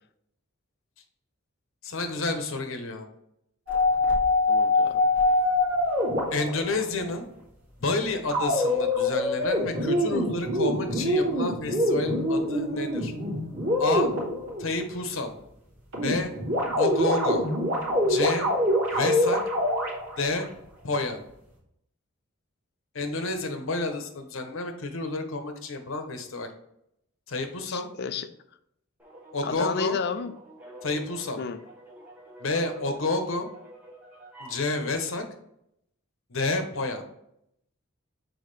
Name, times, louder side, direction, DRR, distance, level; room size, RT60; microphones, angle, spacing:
voice 1, 1.8-3.1 6.3-7.3 7.8-13.1 13.8-14.1 14.6-15.3 16.0-16.3 16.8-17.4 18.1-18.5 18.9-19.4 20.2-20.5 20.8-21.2 22.9-26.5 27.3-27.9 29.3-30.0 30.8-31.4 32.4-33.5 34.4-35.3 36.3-37.0, left 3 dB, 70° left, 6 dB, 0.9 m, -29 dB
sound 1, 3.7-6.8 8.3-14.8 15.9-20.4, left 1 dB, 90° right, 2.5 m, -25 dB
voice 2, 4.5-5.0 27.7-28.3 29.4-30.3 31.4-31.6, left 5 dB, 55° left, 12 dB, 0.4 m, -31 dB
sound 2, 29.0-34.7, right 1 dB, 10° right, 1.3 m, -46 dB
6.3 x 4.6 x 3.3 m, 0.77 s
head